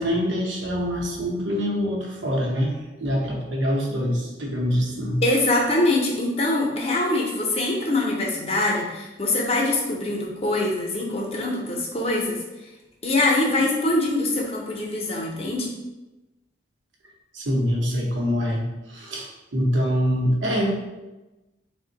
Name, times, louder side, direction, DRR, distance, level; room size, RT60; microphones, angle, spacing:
voice 1, 0.0-2.7 3.0-5.2 17.3-18.6 18.9-19.3 19.5-20.7, equal, 85° right, -1 dB, 0.8 m, -24 dB
voice 2, 5.2-12.4 13.0-15.7, left 2 dB, 35° left, -1 dB, 0.6 m, -23 dB
3.4 x 2.1 x 3.9 m, 1.1 s
head